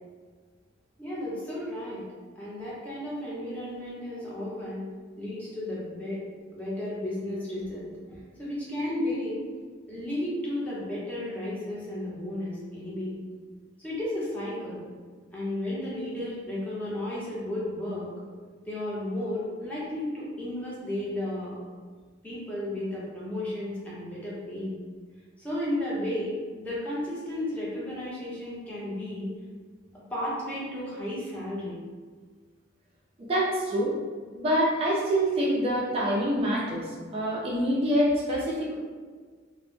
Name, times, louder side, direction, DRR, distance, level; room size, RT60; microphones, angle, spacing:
voice 1, 1.0-2.0 2.4-4.8 5.2-6.2 6.5-9.4 9.9-13.1 13.8-14.8 15.3-18.1 18.7-21.6 22.2-24.7 25.4-29.3 30.1-31.8, left 1 dB, 10° left, -8 dB, 0.7 m, -33 dB
voice 2, 33.2-33.9 34.3-36.9 37.1-38.8, equal, 30° right, -3 dB, 0.3 m, -26 dB
2.0 x 2.0 x 3.0 m, 1.5 s
head